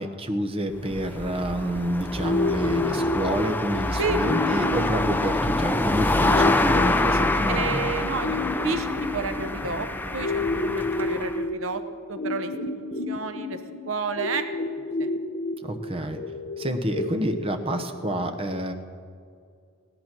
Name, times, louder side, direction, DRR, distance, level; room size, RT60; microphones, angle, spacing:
voice 1, 0.0-7.8 15.6-16.2 16.6-18.7, right 1 dB, 25° right, 6 dB, 0.9 m, -28 dB
sound 1, 0.7-11.4, left 2 dB, 10° left, 0.4 m, -26 dB
sound 2, 2.2-18.2, left 2 dB, 45° left, 0.8 m, -31 dB
voice 2, 7.5-9.9 10.1-11.8 12.1-12.5 13.1-13.6 13.9-14.5 15.0-15.1 15.7-16.1, right 4 dB, 70° right, 9 dB, 0.8 m, -30 dB
16.5 x 11.5 x 6.0 m, 2.3 s
head